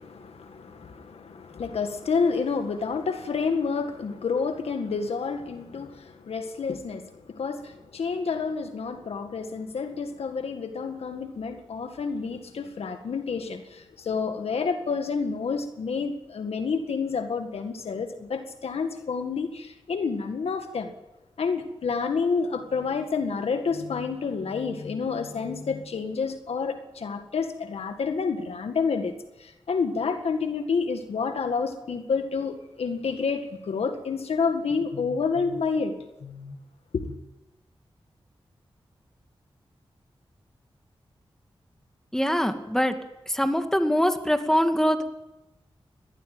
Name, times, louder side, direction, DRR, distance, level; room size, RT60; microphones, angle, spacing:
voice 1, 0.0-20.9 21.4-35.9 36.2-36.6 36.9-37.2, left 5 dB, 90° left, 7 dB, 1.9 m, -29 dB
voice 2, 42.1-43.0 43.3-45.1, equal, 5° left, 7 dB, 2.4 m, -23 dB
20.0 x 14.5 x 9.2 m, 0.95 s
cardioid pair, 50°, 10 cm